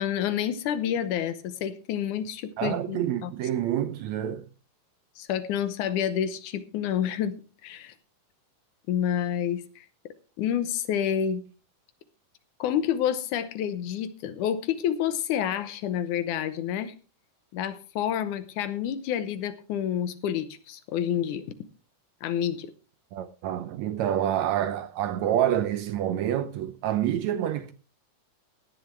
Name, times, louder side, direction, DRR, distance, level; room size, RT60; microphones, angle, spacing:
voice 1, 0.0-3.3 5.2-7.4 7.6-7.9 8.9-9.9 10.4-11.4 12.6-16.9 17.5-21.4 22.2-22.7, left 9 dB, 75° left, 2.3 m, -28 dB
voice 2, 2.6-4.5 23.1-27.7, right 11 dB, 75° right, 1.8 m, -27 dB
18.0 x 10.5 x 3.2 m
omnidirectional pair, 3.7 m